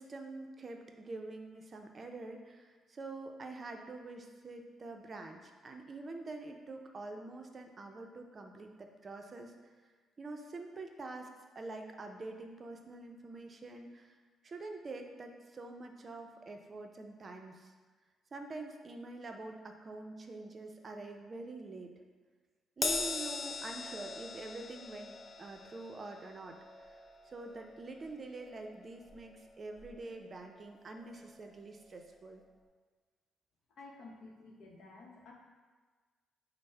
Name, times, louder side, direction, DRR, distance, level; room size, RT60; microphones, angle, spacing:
voice 1, 0.0-9.7 10.2-11.3 11.5-14.2 14.4-17.7 18.3-21.9 22.8-26.6 26.9-27.0 27.2-32.4, right 2 dB, 40° right, 4 dB, 0.5 m, -46 dB
Crash cymbal, 22.8-29.4 29.8-30.0 31.0-31.1, left 3 dB, 30° left, 0.4 m, -41 dB
voice 2, 33.7-35.3, left 3 dB, 70° left, 0 dB, 0.7 m, -52 dB
5.2 x 2.0 x 4.4 m, 1.4 s
cardioid pair, 90°, 0 cm